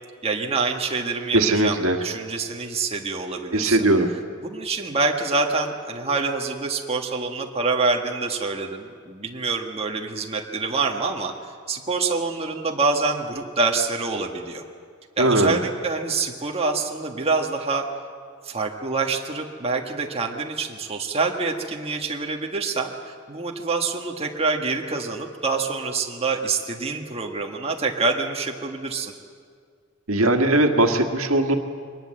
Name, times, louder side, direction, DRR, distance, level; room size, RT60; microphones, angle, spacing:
voice 1, 0.2-3.9 4.4-11.3 11.7-14.6 15.2-17.8 18.4-29.1, right 3 dB, 30° right, 2 dB, 1.6 m, -26 dB
voice 2, 1.3-2.0 3.5-4.1 15.2-15.6 30.1-31.6, right 2 dB, 85° right, 5 dB, 1.8 m, -19 dB
23.0 x 20.0 x 7.8 m, 2.1 s
head